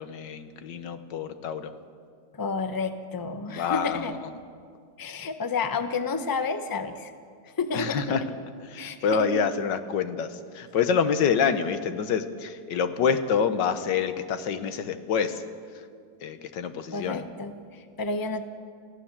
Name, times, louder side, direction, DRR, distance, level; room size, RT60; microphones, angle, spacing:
voice 1, 0.0-1.7 3.5-4.2 7.7-8.2 8.6-15.4 15.7-15.9 16.2-17.3, left 6 dB, 85° left, 10 dB, 1.7 m, -27 dB
voice 2, 2.3-4.1 5.0-7.1 7.4-8.1 8.7-9.0 16.9-18.5, left 4 dB, 15° left, 8 dB, 0.7 m, -30 dB
24.5 x 15.0 x 7.3 m, 2.2 s
omnidirectional pair, 1.9 m